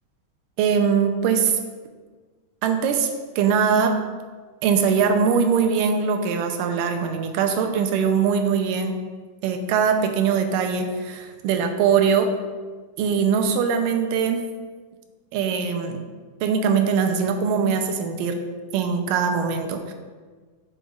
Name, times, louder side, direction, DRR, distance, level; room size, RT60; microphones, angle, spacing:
voice 1, 0.6-1.6 2.6-3.1 3.4-4.0 4.6-8.9 9.4-12.3 13.0-14.4 15.3-16.0 16.4-18.4 18.7-19.9, right 6 dB, 85° right, 5 dB, 2.3 m, -21 dB
8.0 x 6.2 x 2.4 m, 1.4 s
omnidirectional pair, 3.8 m